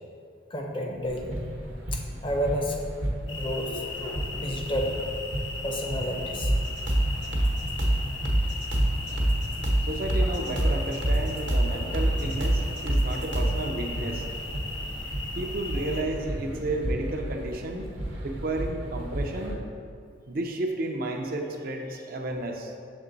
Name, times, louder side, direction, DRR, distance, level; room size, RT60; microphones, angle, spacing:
voice 1, 0.5-1.5 1.9-2.8 3.3-5.0 5.6-6.5, equal, 25° left, 1 dB, 0.6 m, -31 dB
sound 1, 1.0-19.6, right 1 dB, 90° right, 1.0 m, -36 dB
sound 2, 3.3-16.0, left 3 dB, 85° left, 0.8 m, -38 dB
sound 3, 6.4-13.6, right 1 dB, 70° right, 1.0 m, -25 dB
voice 2, 9.8-14.2 15.3-17.9 18.2-19.6 20.3-22.7, right 2 dB, 50° right, 2 dB, 0.5 m, -32 dB
7.1 x 3.7 x 3.9 m, 2.4 s
head